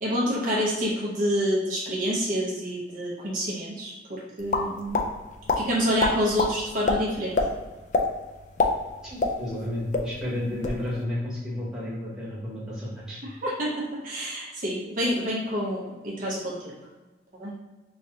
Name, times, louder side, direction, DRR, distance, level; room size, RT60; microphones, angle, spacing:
voice 1, 0.0-5.0 5.6-7.3 13.4-16.7 17.4-17.5, equal, 50° right, -4 dB, 0.7 m, -28 dB
sound 1, 4.5-5.1 5.5-5.6 6.0-6.5 6.9-7.0 7.3-7.5 7.9-8.1 8.4-9.7 9.9-10.1 10.4-10.8, left 3 dB, 45° left, 0.3 m, -23 dB
voice 2, 9.0-13.2, left 1 dB, 5° right, -9 dB, 1.0 m, -32 dB
3.2 x 2.7 x 3.6 m, 1.2 s
head